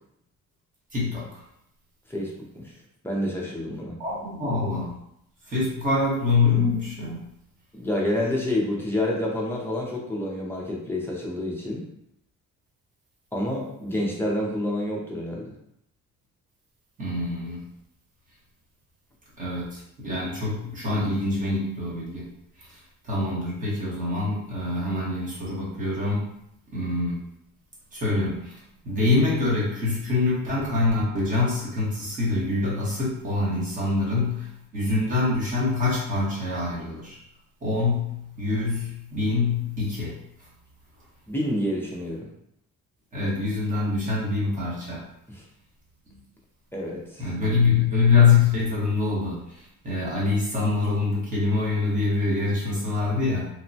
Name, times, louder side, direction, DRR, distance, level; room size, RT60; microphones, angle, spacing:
voice 1, 0.9-1.4 4.0-4.9 5.5-7.2 17.0-17.6 19.4-22.3 22.6-26.2 26.7-27.2 27.9-28.6 28.8-37.2 37.6-40.1 43.1-45.0 46.1-46.2 47.2-53.5, left 3 dB, 25° right, -5 dB, 0.8 m, -25 dB
voice 2, 2.1-2.6 3.0-4.0 7.7-11.8 13.3-15.5 41.3-42.3 45.3-45.4 46.7-47.3, left 1 dB, 10° left, -4 dB, 0.3 m, -28 dB
2.9 x 2.1 x 2.6 m, 0.76 s
cardioid pair, 170°, 31 cm